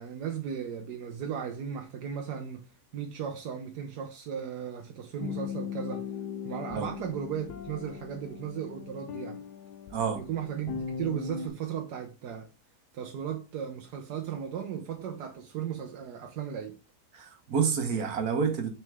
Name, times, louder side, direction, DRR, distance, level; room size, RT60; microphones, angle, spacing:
voice 1, 0.0-2.6 2.9-6.1 6.4-9.4 10.1-12.5 12.9-16.8, right 8 dB, 85° right, 1.4 m, -36 dB
sound 1, 5.2-11.5, left 7 dB, 90° left, 1.3 m, -39 dB
voice 2, 9.9-10.2 17.1-18.7, right 6 dB, 70° right, 1.6 m, -28 dB
6.2 x 4.4 x 3.5 m
omnidirectional pair, 1.7 m